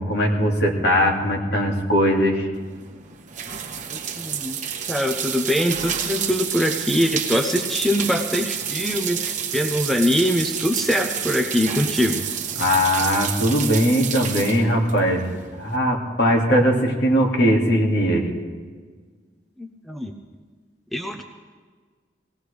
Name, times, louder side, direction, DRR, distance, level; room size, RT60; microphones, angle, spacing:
voice 1, 0.0-2.5 12.6-15.3 15.6-18.3, equal, 60° left, 0 dB, 2.4 m, -20 dB
sound 1, 2.5-15.7, right 8 dB, 40° right, 1.2 m, -29 dB
voice 2, 3.9-4.6 4.9-12.2 19.6-20.1 20.9-21.2, equal, ahead, 4 dB, 0.6 m, -23 dB
19.5 x 17.5 x 3.4 m, 1.5 s
head